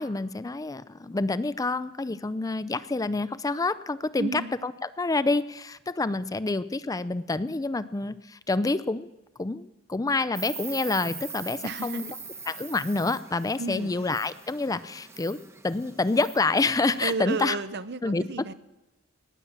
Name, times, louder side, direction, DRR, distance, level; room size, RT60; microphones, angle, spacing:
voice 1, 0.0-9.1 9.4-12.0 12.5-15.4 15.6-17.6 18.0-18.2, left 3 dB, 20° left, 15 dB, 0.4 m, -28 dB
voice 2, 4.2-4.5 11.6-12.1 13.6-13.9 17.0-18.5, right 4 dB, 60° right, 14 dB, 0.7 m, -32 dB
Insect, 10.3-17.1, right 5 dB, 15° right, 1.0 m, -42 dB
18.5 x 8.8 x 7.0 m, 1.0 s
head